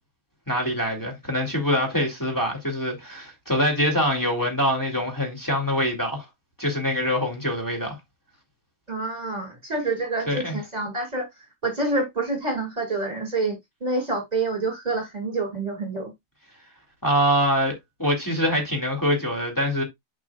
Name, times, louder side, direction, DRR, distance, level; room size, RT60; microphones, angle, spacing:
voice 1, 0.5-6.3 6.6-8.0 10.3-10.6 17.0-17.7 18.0-19.8, equal, 15° left, 2.4 m, -24 dB
voice 2, 8.9-11.3 11.6-16.1, right 2 dB, 30° right, 2.4 m, -27 dB
10.5 x 4.8 x 2.3 m
omnidirectional pair, 1.4 m